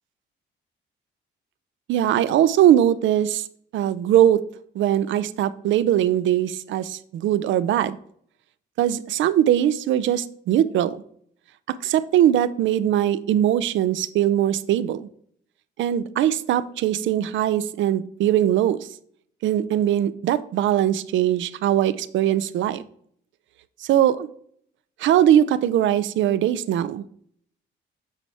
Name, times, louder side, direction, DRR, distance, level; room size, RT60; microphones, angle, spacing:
voice 1, 1.9-3.5 3.7-4.4 4.7-8.0 8.8-11.0 11.7-15.1 15.8-18.9 19.4-22.8 23.8-24.3 25.0-27.0, right 11 dB, 75° right, 16 dB, 0.5 m, -21 dB
9.0 x 4.1 x 3.4 m, 0.63 s
cardioid pair, 90°, 20 cm